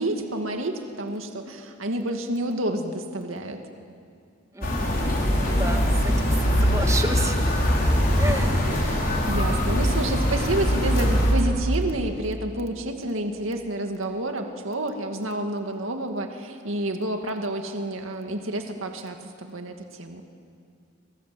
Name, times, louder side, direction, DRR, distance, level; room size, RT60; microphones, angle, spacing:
voice 1, 0.0-3.6 8.1-8.2 8.6-20.2, right 1 dB, 80° right, 4 dB, 2.2 m, -29 dB
voice 2, 4.5-5.8 6.2-6.3 6.6-7.5 8.2-8.8, right 2 dB, 15° right, 5 dB, 1.8 m, -31 dB
sound 1, 4.6-11.3, equal, 45° left, 5.2 m, -22 dB
27.0 x 26.0 x 7.8 m, 2.4 s
head